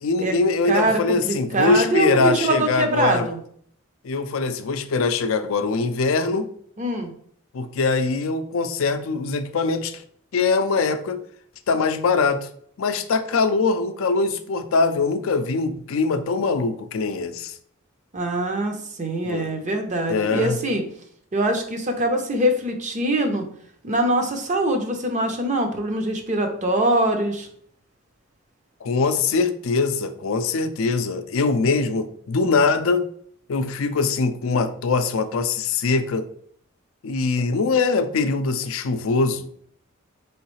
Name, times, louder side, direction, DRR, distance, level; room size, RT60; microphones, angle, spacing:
voice 1, 0.0-3.3 4.0-6.5 7.5-10.0 10.3-11.2 11.7-12.5 12.8-17.5 19.2-19.5 20.1-20.6 28.8-33.1 33.5-36.3 37.0-39.5, left 4 dB, 70° left, 10 dB, 0.4 m, -22 dB
voice 2, 0.6-3.4 6.8-7.1 18.1-20.8 21.3-23.4 23.8-27.5, right 1 dB, 35° right, 4 dB, 0.7 m, -23 dB
4.7 x 3.1 x 3.1 m, 0.62 s
head